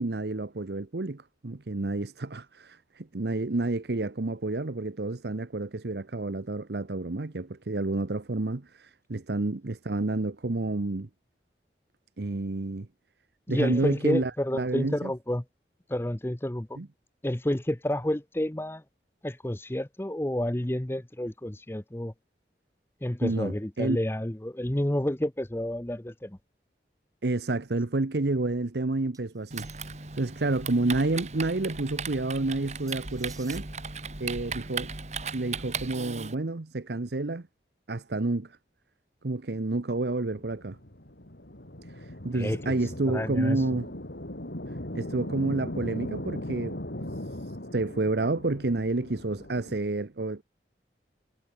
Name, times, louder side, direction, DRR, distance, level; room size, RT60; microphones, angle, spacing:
voice 1, 0.0-11.1 12.2-12.9 13.5-15.1 16.8-16.9 23.2-24.0 27.2-29.7 30.2-33.7 34.2-34.9 35.3-37.5 37.9-38.6 39.2-40.8 41.9-43.9 44.9-46.8 47.3-50.4, right 2 dB, 70° right, 0.9 m, -29 dB
voice 2, 13.5-15.4 15.9-16.8 17.2-18.8 19.2-22.1 23.0-26.4 42.3-42.6 43.0-43.6, left 1 dB, 15° left, 0.7 m, -30 dB
sound 1, 29.1-30.1 32.9-33.7, right 6 dB, 20° right, 6.4 m, -51 dB
Typing, 29.5-36.3, right 5 dB, 40° right, 2.5 m, -37 dB
sound 2, 40.2-49.8, left 1 dB, 75° left, 3.4 m, -39 dB
head